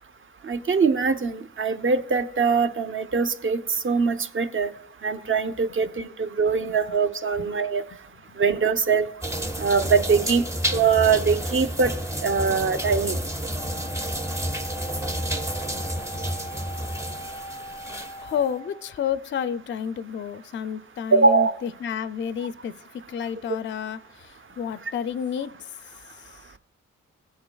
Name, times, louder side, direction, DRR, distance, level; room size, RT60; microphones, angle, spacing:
voice 1, 0.4-4.7 5.0-7.8 8.4-9.1 9.6-10.5 10.7-11.9 12.2-13.2 21.1-21.5, right 5 dB, 40° right, 10 dB, 0.7 m, -22 dB
sound 1, 9.2-18.3, right 1 dB, 10° right, 0.8 m, -30 dB
Wind instrument woodwind instrument, 13.6-19.0, equal, 70° right, 1.7 m, -40 dB
voice 2, 18.2-22.7 23.1-25.5 26.1-26.4, left 8 dB, 40° left, 13 dB, 0.4 m, -30 dB
16.0 x 7.7 x 2.3 m, 0.68 s
cardioid pair, 55°, 30 cm